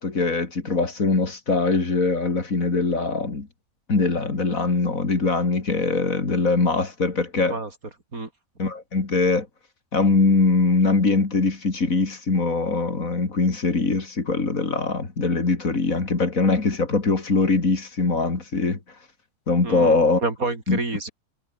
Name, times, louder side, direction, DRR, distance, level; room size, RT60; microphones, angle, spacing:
voice 1, 0.0-3.5 3.9-7.6 8.6-9.5 9.9-18.8 19.5-20.2 20.7-20.8, left 3 dB, 70° left, 3.5 m, -22 dB
voice 2, 19.6-21.1, right 3 dB, 80° right, 4.8 m, -28 dB
omnidirectional pair, 1.5 m